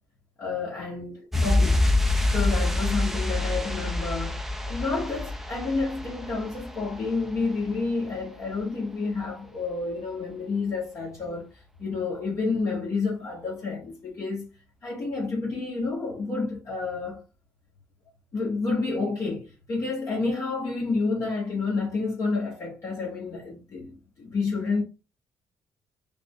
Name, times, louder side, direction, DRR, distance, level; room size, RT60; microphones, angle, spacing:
voice 1, 0.4-1.8 2.3-11.5 11.8-14.5 14.8-17.2 18.3-24.8, left 4 dB, 50° left, 1.3 m, -29 dB
sound 1, 1.3-7.8 8.1-8.2, left 2 dB, 5° right, 0.6 m, -26 dB
3.6 x 2.3 x 3.1 m
supercardioid pair, 70°, 6 cm